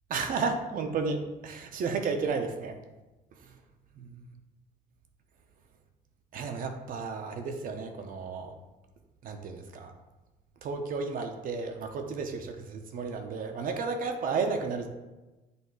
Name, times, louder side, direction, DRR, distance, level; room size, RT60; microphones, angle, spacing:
voice 1, 0.1-2.8 3.4-3.5 4.0-4.3 6.3-8.5 9.2-9.9 10.6-14.9, right 4 dB, 55° right, 5 dB, 0.7 m, -33 dB
8.0 x 2.7 x 4.7 m, 1.1 s
cardioid pair, 110°, 17 cm